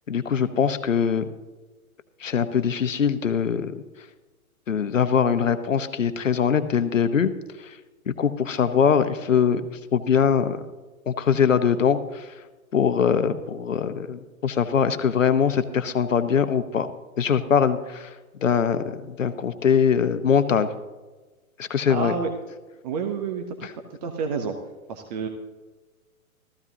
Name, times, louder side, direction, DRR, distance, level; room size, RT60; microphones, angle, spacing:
voice 1, 0.1-1.2 2.2-3.7 4.7-7.3 8.2-9.6 9.9-10.6 11.1-12.3 12.7-16.9 17.2-18.1 18.4-20.7 21.6-22.1, left 7 dB, 65° left, 11 dB, 1.0 m, -22 dB
voice 2, 21.9-22.3 22.8-23.7 24.0-24.5 24.9-25.3, right 5 dB, 30° right, 4 dB, 0.9 m, -29 dB
15.5 x 14.0 x 2.8 m, 1.2 s
figure-of-eight pair, 120°, 42 cm